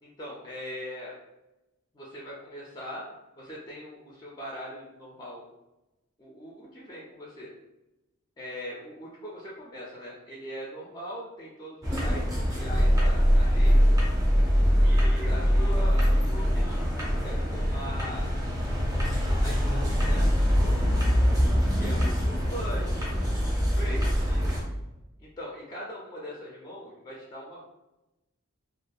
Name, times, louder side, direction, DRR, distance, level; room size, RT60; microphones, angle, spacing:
voice 1, 0.0-1.1 1.9-3.0 3.4-5.5 6.2-7.5 8.4-13.8 14.8-18.3 19.4-20.9 21.8-24.5 25.2-27.6, equal, 20° left, -5 dB, 0.3 m, -41 dB
sound 1, 11.8-24.6, equal, 15° right, 0.7 m, -23 dB
2.6 x 2.3 x 2.2 m, 0.98 s
head